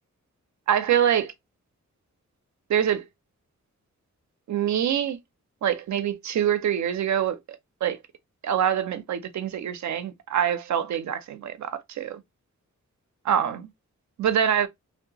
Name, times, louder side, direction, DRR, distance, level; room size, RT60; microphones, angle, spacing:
voice 1, 0.7-1.3 2.7-3.1 4.5-5.2 5.6-7.4 7.8-8.0 8.4-12.2 13.2-13.7 14.2-14.7, right 9 dB, 70° right, 0.4 m, -25 dB
2.6 x 2.1 x 2.8 m
wide cardioid pair, 105°, 30 cm